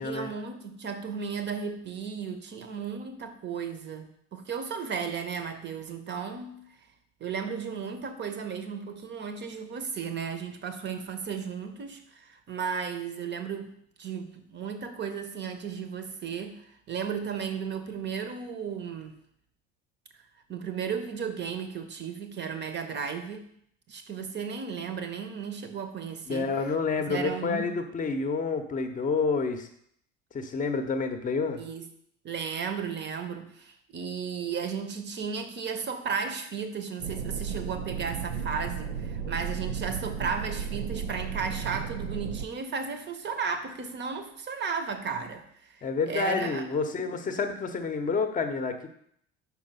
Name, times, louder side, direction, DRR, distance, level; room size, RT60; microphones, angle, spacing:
voice 1, 0.0-6.6 7.2-13.7 14.0-19.2 20.5-23.5 23.9-26.5 27.1-27.7 31.6-31.9 32.2-46.7, right 6 dB, 30° right, 9 dB, 0.8 m, -34 dB
voice 2, 26.3-29.7 30.3-31.6 45.8-48.9, left 4 dB, 20° left, 7 dB, 0.8 m, -29 dB
sound 1, 37.0-42.4, right 7 dB, 70° right, 0.6 m, -34 dB
5.3 x 4.8 x 5.3 m, 0.68 s
figure-of-eight pair, 65°, 38 cm